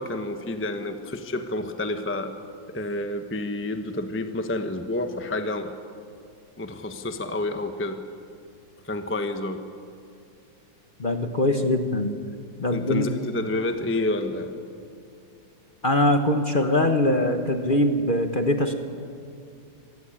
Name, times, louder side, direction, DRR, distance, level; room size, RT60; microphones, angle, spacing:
voice 1, 0.0-2.3 2.7-5.7 6.6-8.0 8.8-9.6 12.7-14.5, left 2 dB, 10° left, 7 dB, 0.9 m, -29 dB
voice 2, 11.0-12.1 12.6-13.1 15.8-18.7, left 1 dB, 30° left, 6 dB, 1.1 m, -22 dB
25.5 x 18.0 x 8.8 m, 2.5 s
omnidirectional pair, 2.0 m